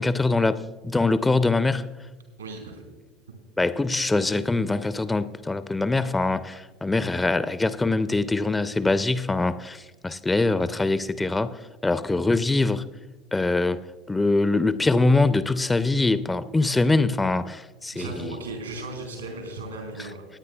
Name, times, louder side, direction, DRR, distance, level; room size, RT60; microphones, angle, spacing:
voice 1, 0.0-1.9 3.6-12.9 13.3-13.8 14.1-18.2, left 3 dB, 15° left, 14 dB, 0.5 m, -23 dB
voice 2, 2.4-2.9 3.3-3.4 17.9-20.3, right 2 dB, 85° right, 4 dB, 4.2 m, -36 dB
23.0 x 9.6 x 2.3 m, 1.2 s
figure-of-eight pair, 70°, 0 cm